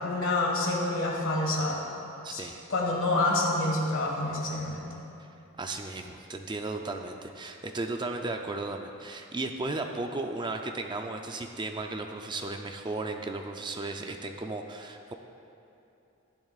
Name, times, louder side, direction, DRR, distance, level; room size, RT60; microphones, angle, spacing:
voice 1, 0.0-1.8 2.3-5.0, left 2 dB, 60° left, -1 dB, 1.7 m, -28 dB
voice 2, 2.2-2.7 5.2-5.3 5.6-15.1, right 2 dB, 20° right, 4 dB, 0.4 m, -35 dB
14.0 x 10.5 x 2.4 m, 2.8 s
head